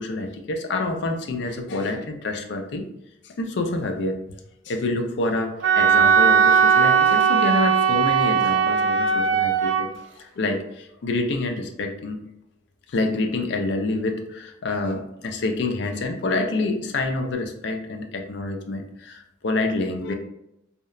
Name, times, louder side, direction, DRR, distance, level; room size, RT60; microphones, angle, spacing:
voice 1, 0.0-2.9 3.2-4.2 4.7-9.9 10.2-12.2 12.9-20.1, left 2 dB, 60° left, 4 dB, 0.4 m, -27 dB
Wind instrument woodwind instrument, 5.6-9.8, right 6 dB, 65° right, 0.4 m, -18 dB
2.8 x 2.1 x 2.3 m, 0.82 s
head